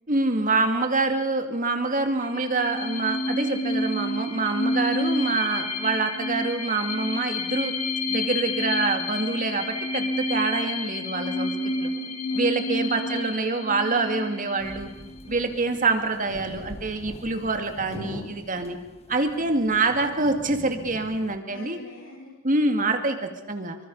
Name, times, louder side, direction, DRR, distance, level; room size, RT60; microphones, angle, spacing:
voice 1, 0.1-7.7 8.1-11.5 11.8-11.9 12.3-14.9 15.3-18.8 19.1-21.8 22.4-23.8, right 3 dB, 40° right, 6 dB, 2.3 m, -26 dB
sound 1, 2.1-15.5, left 2 dB, 90° left, 3.4 m, -29 dB
voice 2, 11.6-12.8 15.2-15.5 21.5-22.3, left 1 dB, 60° left, -5 dB, 5.3 m, -47 dB
sound 2, 14.6-21.4, left 1 dB, 30° left, 1.5 m, -43 dB
25.0 x 24.5 x 5.5 m, 1.0 s
head